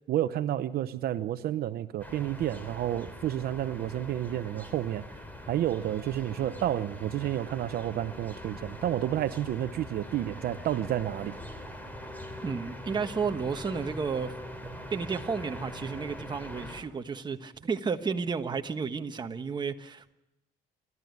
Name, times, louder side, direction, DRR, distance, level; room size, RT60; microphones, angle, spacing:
voice 1, 0.0-5.0 5.5-11.3, right 12 dB, 65° right, 0.8 m, -30 dB
sound 1, 2.0-16.8, equal, 10° left, 3.6 m, -42 dB
voice 2, 12.4-14.3 14.9-20.1, right 5 dB, 25° right, 1.3 m, -32 dB
28.5 x 12.5 x 9.4 m
cardioid pair, 110°, 17 cm